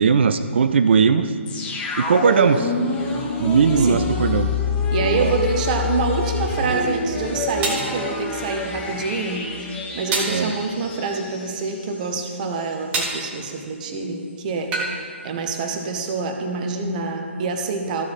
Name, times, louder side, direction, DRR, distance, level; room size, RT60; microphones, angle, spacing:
voice 1, 0.0-1.3 2.0-2.7 3.4-4.6 5.0-5.3 10.3-10.5, right 6 dB, 60° right, 11 dB, 0.4 m, -18 dB
sound 1, 1.5-12.3 12.6-12.7, left 4 dB, 15° left, 1.1 m, -27 dB
voice 2, 3.8-4.1 4.9-9.5 9.9-14.7 15.2-18.1, right 4 dB, 35° right, 4 dB, 0.9 m, -26 dB
sound 2, 7.6-7.9 10.1-10.4 12.9-13.2 14.7-15.0, right 3 dB, 20° right, 1.3 m, -24 dB
14.0 x 4.8 x 4.2 m, 2.2 s
figure-of-eight pair, 135°, 7 cm